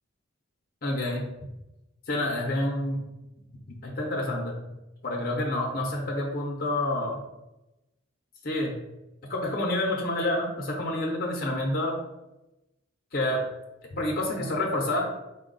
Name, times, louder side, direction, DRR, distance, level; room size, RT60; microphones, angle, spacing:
voice 1, 0.8-1.3 2.1-3.0 3.7-4.6 5.0-7.2 8.4-8.8 9.3-12.0 13.1-13.5 13.9-15.1, left 1 dB, 45° left, 0 dB, 0.7 m, -28 dB
4.2 x 2.3 x 3.8 m, 0.97 s
head